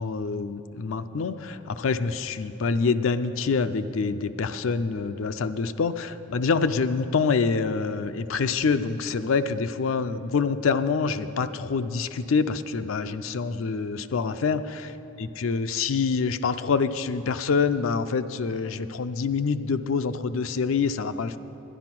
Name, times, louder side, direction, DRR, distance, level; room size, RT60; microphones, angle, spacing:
voice 1, 0.0-14.9 15.2-21.4, left 5 dB, 80° left, 10 dB, 0.4 m, -26 dB
11.0 x 10.5 x 6.0 m, 2.9 s
head